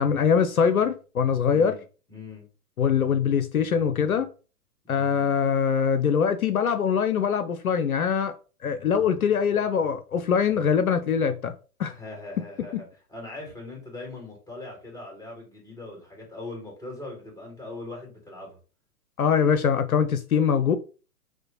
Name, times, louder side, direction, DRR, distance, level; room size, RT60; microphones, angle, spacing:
voice 1, 0.0-1.8 2.8-4.3 4.9-8.3 8.6-11.5 11.8-11.9 12.7-12.8 19.2-20.8, left 7 dB, 70° left, 0.6 m, -23 dB
voice 2, 1.5-1.8 2.1-2.5 11.9-18.6, left 2 dB, 10° left, 1.6 m, -41 dB
6.2 x 2.2 x 2.9 m
figure-of-eight pair, 115°, 45 cm